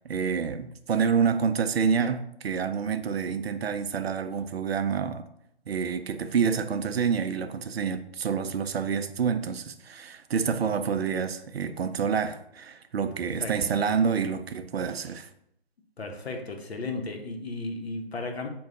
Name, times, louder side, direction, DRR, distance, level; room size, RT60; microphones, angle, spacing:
voice 1, 0.0-5.3 5.7-15.3, right 6 dB, 70° right, 0.5 m, -28 dB
voice 2, 16.0-18.5, left 3 dB, 75° left, 0.9 m, -34 dB
4.7 x 2.3 x 3.7 m
hypercardioid pair, 165°, 32 cm